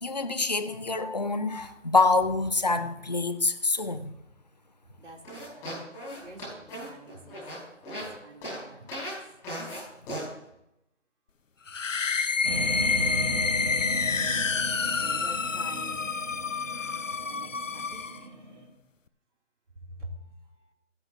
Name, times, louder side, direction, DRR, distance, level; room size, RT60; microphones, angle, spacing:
voice 1, 0.0-4.1, left 3 dB, 35° left, 10 dB, 0.6 m, -26 dB
voice 2, 5.0-5.9 6.2-7.4 7.9-9.1 14.8-16.1 17.3-18.3 19.8-20.7, right 1 dB, 70° right, 0 dB, 3.1 m, -47 dB
sound 1, 5.2-8.1 8.4-8.6 8.9-9.1 9.4-9.8 10.1-10.2, equal, 10° left, 6.4 m, -37 dB
sound 2, 11.7-18.2, left 5 dB, 90° left, 1.0 m, -28 dB
sound 3, 12.4-18.6, right 2 dB, 35° right, 2.6 m, -36 dB
17.5 x 15.0 x 2.7 m, 0.84 s
figure-of-eight pair, 175°, 37 cm